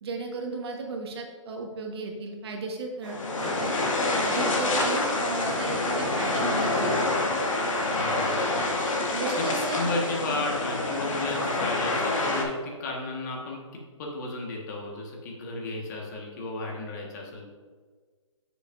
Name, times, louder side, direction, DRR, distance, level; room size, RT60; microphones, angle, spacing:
voice 1, 0.0-3.7 4.2-7.0 9.1-10.0 10.3-10.5, right 3 dB, 50° right, 2 dB, 1.4 m, -34 dB
sound 1, 3.0-12.4, left 2 dB, 80° left, 2.1 m, -27 dB
voice 2, 7.8-8.7 9.4-17.4, left 2 dB, 35° left, -1 dB, 1.6 m, -34 dB
9.8 x 6.8 x 2.7 m, 1.5 s
hypercardioid pair, 150°, 17 cm